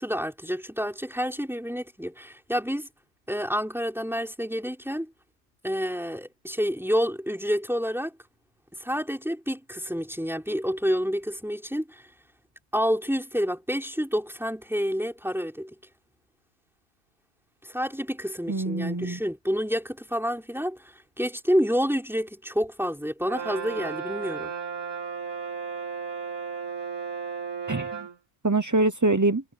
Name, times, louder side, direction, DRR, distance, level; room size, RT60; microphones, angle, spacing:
voice 1, 0.0-2.9 3.3-5.1 5.6-8.1 8.8-12.1 12.7-15.7 17.6-24.5, equal, ahead, 4.5 m, -28 dB
voice 2, 18.5-19.2 27.7-28.1 28.4-29.4, right 2 dB, 20° right, 0.4 m, -24 dB
Brass instrument, 23.3-28.2, right 6 dB, 70° right, 2.9 m, -34 dB
omnidirectional pair, 1.7 m